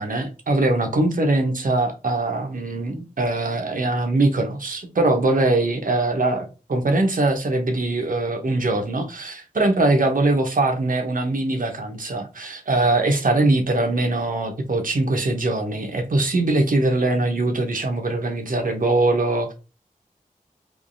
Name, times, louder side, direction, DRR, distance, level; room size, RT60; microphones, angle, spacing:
voice 1, 0.0-19.5, right 2 dB, 75° right, 1.0 m, -22 dB
3.5 x 3.1 x 2.6 m
wide cardioid pair, 55°, 14 cm